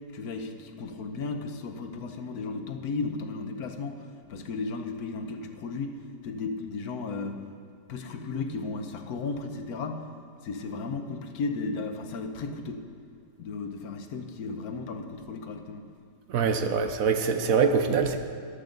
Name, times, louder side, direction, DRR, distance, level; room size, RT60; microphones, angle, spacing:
voice 1, 0.1-6.0 6.2-7.4 7.9-10.1 10.4-12.8 13.4-15.9, left 3 dB, 60° left, 6 dB, 1.4 m, -34 dB
voice 2, 16.3-18.2, right 5 dB, 60° right, 7 dB, 1.0 m, -24 dB
14.5 x 11.5 x 3.9 m, 2.5 s
omnidirectional pair, 2.0 m